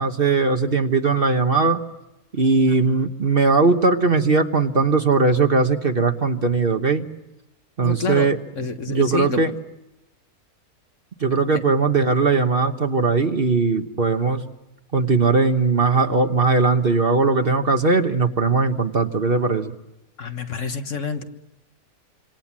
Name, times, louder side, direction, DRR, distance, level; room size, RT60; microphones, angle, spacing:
voice 1, 0.0-1.8 2.3-7.1 7.8-8.4 8.9-9.5 11.2-14.4 14.9-19.7, right 4 dB, 40° right, 7 dB, 1.3 m, -19 dB
voice 2, 7.8-8.3 8.6-9.4 20.2-21.2, left 5 dB, 55° left, 7 dB, 1.8 m, -28 dB
27.0 x 26.0 x 7.4 m, 0.94 s
omnidirectional pair, 1.5 m